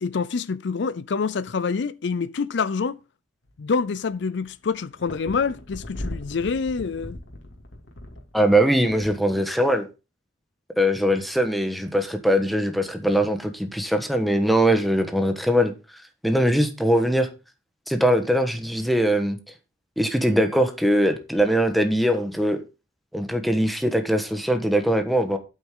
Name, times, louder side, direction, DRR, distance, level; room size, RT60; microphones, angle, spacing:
voice 1, 0.0-3.0 3.6-7.2, left 5 dB, 65° left, 0.5 m, -26 dB
sound 1, 3.4-4.1 4.4-9.4, left 1 dB, 90° left, 2.4 m, -38 dB
voice 2, 8.3-9.8 10.8-15.7 16.2-17.3 17.9-19.4 20.0-22.6 23.1-25.4, equal, ahead, 1.3 m, -21 dB
9.3 x 8.0 x 3.7 m
head